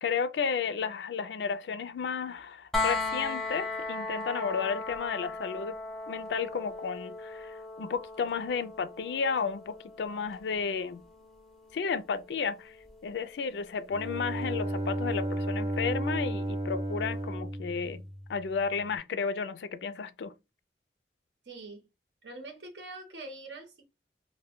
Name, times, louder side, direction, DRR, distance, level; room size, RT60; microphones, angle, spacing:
voice 1, 0.0-5.7 6.1-11.0 11.7-12.7 13.0-18.0 18.3-20.3, left 5 dB, 80° left, 0.4 m, -33 dB
sound 1, 2.7-14.5 16.5-16.6, left 3 dB, ahead, 0.4 m, -38 dB
Bowed string instrument, 13.9-18.7, right 1 dB, 30° right, 0.7 m, -33 dB
voice 2, 21.4-21.8 22.2-23.9, right 2 dB, 80° right, 0.8 m, -44 dB
2.2 x 2.1 x 3.5 m
head